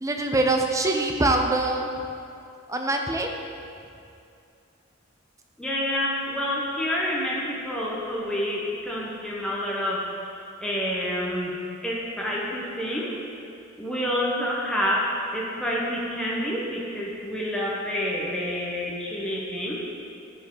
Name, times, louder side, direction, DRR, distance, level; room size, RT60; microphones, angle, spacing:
voice 1, 0.0-1.9 2.7-3.3, right 2 dB, 15° right, 3 dB, 0.6 m, -23 dB
voice 2, 5.6-10.1 10.6-13.1 13.8-19.8, equal, 5° left, -5 dB, 1.0 m, -28 dB
13.5 x 5.4 x 3.9 m, 2.5 s
head